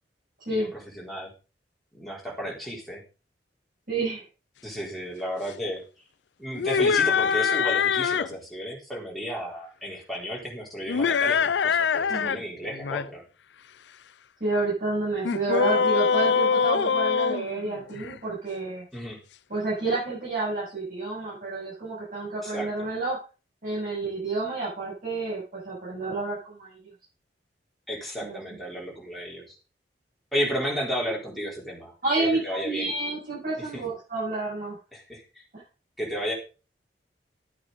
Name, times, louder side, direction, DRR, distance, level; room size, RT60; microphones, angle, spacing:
voice 1, 0.5-1.3 1.9-3.0 4.6-5.8 6.4-13.2 18.9-19.2 22.4-22.9 27.9-29.5 30.3-31.9 32.2-32.9 33.6-33.8 34.9-35.2 36.0-36.3, equal, ahead, -3 dB, 4.0 m, -33 dB
voice 2, 3.9-4.2 12.1-12.4 14.4-18.9 19.5-23.2 23.6-26.8 28.2-28.4 32.0-34.8, right 3 dB, 50° right, -8 dB, 7.5 m, -29 dB
sound 1, 6.5-8.3 10.9-12.4 12.7-13.1 15.2-18.1, left 6 dB, 85° left, 0.5 m, -23 dB
12.5 x 8.7 x 4.0 m, 0.33 s
head